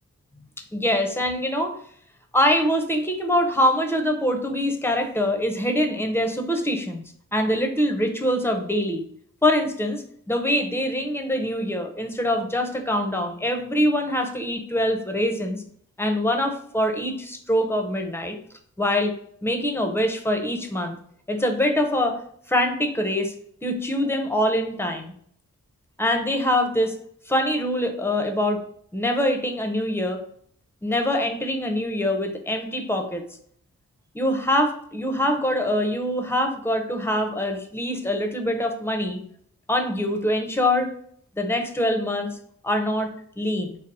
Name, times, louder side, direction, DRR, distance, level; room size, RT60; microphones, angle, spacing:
voice 1, 0.7-1.7 2.3-7.0 7.3-9.0 9.4-15.6 16.0-18.4 18.8-19.1 19.4-21.0 21.3-22.2 22.5-23.3 23.6-25.1 26.0-27.0 27.3-28.6 28.9-30.2 30.8-33.2 34.1-39.2 39.7-40.9 41.4-42.3 42.6-43.8, left 1 dB, 5° left, 5 dB, 0.6 m, -24 dB
4.0 x 2.0 x 4.0 m, 0.62 s
cardioid pair, 45°, 34 cm